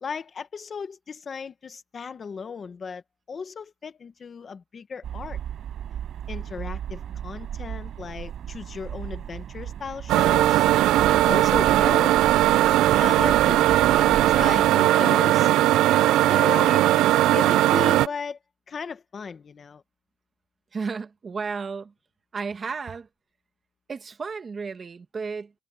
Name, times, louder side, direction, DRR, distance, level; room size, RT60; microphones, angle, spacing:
voice 1, 0.0-3.0 3.3-5.4 6.3-10.6 11.1-12.2 13.0-15.5 16.3-18.4 18.7-19.8, left 5 dB, 25° left, 1.1 m, -35 dB
sound 1, 5.0-14.8, right 9 dB, 45° right, 6.6 m, -36 dB
sound 2, 10.1-18.1, right 14 dB, 70° right, 0.4 m, -19 dB
voice 2, 20.7-21.9 22.3-23.1 23.9-25.5, right 5 dB, 25° right, 1.7 m, -33 dB
cardioid pair, 170°, 0 cm